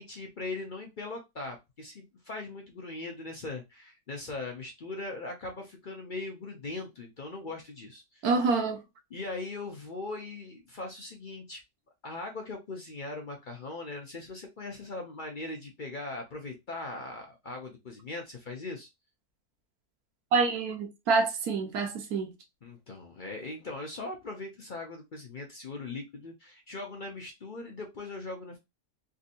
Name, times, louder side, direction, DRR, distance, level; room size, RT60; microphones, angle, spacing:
voice 1, 0.0-8.3 9.1-11.6 12.0-18.9 22.6-28.6, left 2 dB, 50° left, 0.6 m, -40 dB
voice 2, 8.2-8.8 20.3-22.3, right 4 dB, 85° right, 1.3 m, -27 dB
3.5 x 2.7 x 2.5 m
omnidirectional pair, 1.6 m